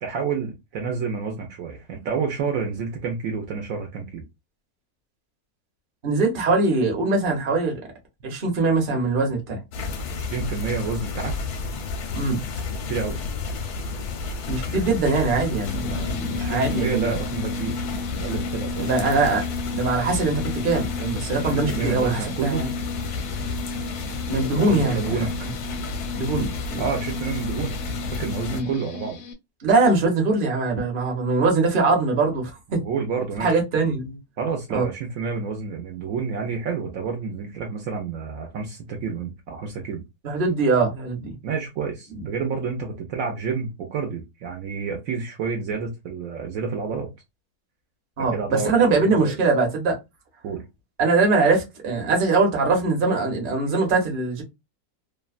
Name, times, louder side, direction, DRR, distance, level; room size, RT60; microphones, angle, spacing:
voice 1, 0.0-4.2 10.2-11.3 12.9-13.2 16.0-17.8 18.2-18.9 21.4-22.6 24.4-25.3 26.8-27.8 28.1-29.2 32.7-33.6 34.4-40.0 41.4-47.1 48.2-48.7 49.2-49.3 50.4-50.6, right 5 dB, 70° right, 1.0 m, -29 dB
voice 2, 6.0-7.8 8.2-9.6 12.1-12.4 14.5-17.1 18.8-19.4 19.7-22.7 24.3-25.2 26.1-26.8 28.5-28.7 29.6-32.5 33.4-34.2 34.7-34.8 40.2-41.3 48.2-50.0 51.0-54.4, right 3 dB, 40° right, 0.9 m, -22 dB
sound 1, 9.7-28.6, left 4 dB, 90° left, 1.2 m, -31 dB
sound 2, 15.6-29.3, left 4 dB, 65° left, 0.7 m, -34 dB
2.8 x 2.2 x 2.4 m
omnidirectional pair, 1.6 m